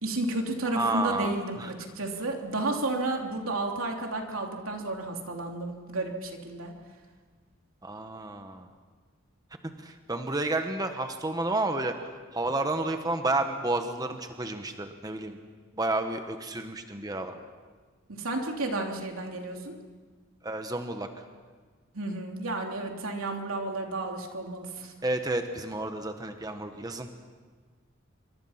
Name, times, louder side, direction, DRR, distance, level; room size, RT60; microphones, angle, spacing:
voice 1, 0.0-6.7 18.1-19.8 21.9-24.9, right 2 dB, 85° right, 2 dB, 3.1 m, -32 dB
voice 2, 0.7-1.3 1.6-1.7 7.8-8.7 9.6-11.9 12.3-15.4 15.8-17.4 20.4-21.1 25.0-27.1, right 2 dB, 20° right, 6 dB, 1.3 m, -31 dB
27.0 x 24.0 x 5.8 m, 1.5 s
head